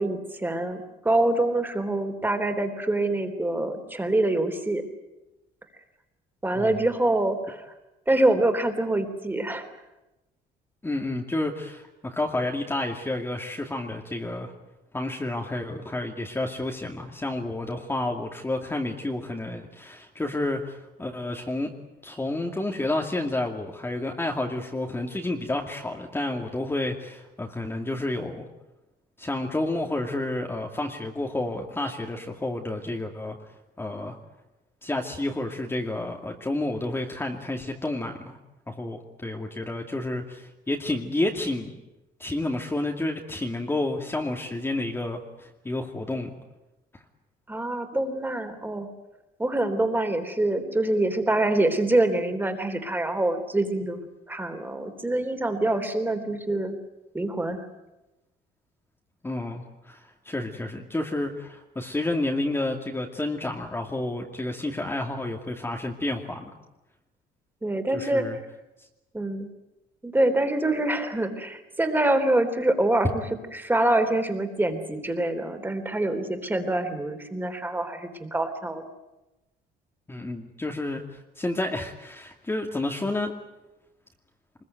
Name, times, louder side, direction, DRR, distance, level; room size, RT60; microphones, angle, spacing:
voice 1, 0.0-4.8 6.4-7.7 8.1-9.6 47.5-48.9 49.4-56.8 57.1-57.7 67.6-68.4 69.1-69.5 70.0-73.1 73.5-78.8, right 2 dB, 10° right, 7 dB, 3.6 m, -25 dB
voice 2, 10.8-14.5 14.9-21.7 22.0-28.5 29.2-33.4 33.8-34.2 34.8-38.4 38.7-41.8 42.2-46.3 46.9-47.0 59.2-66.5 67.9-68.4 80.1-83.3, left 2 dB, 15° left, 2 dB, 2.4 m, -30 dB
23.5 x 21.5 x 9.3 m, 0.99 s
cardioid pair, 110°, 17 cm